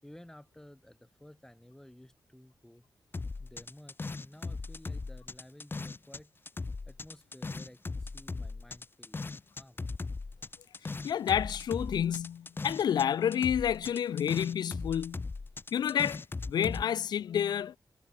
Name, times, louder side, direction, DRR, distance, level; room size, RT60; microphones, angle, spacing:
voice 1, 0.0-2.8 3.4-6.3 6.9-9.2 9.5-9.8, left 1 dB, 5° left, 6.8 m, -54 dB
sound 1, 3.1-6.2 6.5-13.1 13.3-16.8, left 3 dB, 30° left, 2.6 m, -38 dB
voice 2, 11.0-15.3 15.7-17.8, left 9 dB, 80° left, 0.4 m, -29 dB
wide cardioid pair, 130°, 7 cm